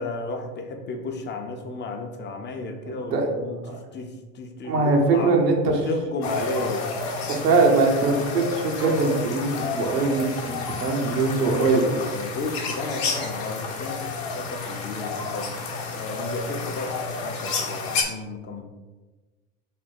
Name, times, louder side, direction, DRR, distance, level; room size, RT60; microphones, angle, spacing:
voice 1, 0.0-5.5 5.8-6.9 11.4-18.6, left 2 dB, 25° left, 4 dB, 0.5 m, -33 dB
voice 2, 2.8-3.3 3.6-3.8 4.6-5.9 7.3-11.8, right 3 dB, 90° right, 1 dB, 0.8 m, -22 dB
sound 1, 6.2-18.0, left 4 dB, 50° left, 0.8 m, -30 dB
3.6 x 2.1 x 4.2 m, 1.2 s
hypercardioid pair, 80°, 46 cm